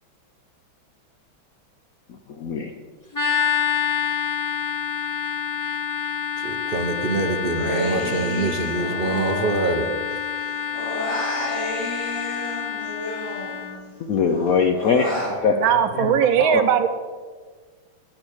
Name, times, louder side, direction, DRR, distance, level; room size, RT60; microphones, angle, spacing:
voice 1, 2.4-2.7 14.1-16.1 16.4-16.6, left 5 dB, 70° left, 5 dB, 0.8 m, -22 dB
sound 1, 3.1-13.7, left 8 dB, 20° left, 0.5 m, -27 dB
voice 2, 6.4-9.9, right 3 dB, 45° right, 4 dB, 0.7 m, -25 dB
Human voice, 7.5-10.1 10.4-13.9 14.3-15.4, left 1 dB, 35° left, 3.8 m, -31 dB
voice 3, 15.5-16.9, right 9 dB, 80° right, 9 dB, 1.6 m, -19 dB
9.9 x 8.7 x 6.4 m, 1.5 s
omnidirectional pair, 2.2 m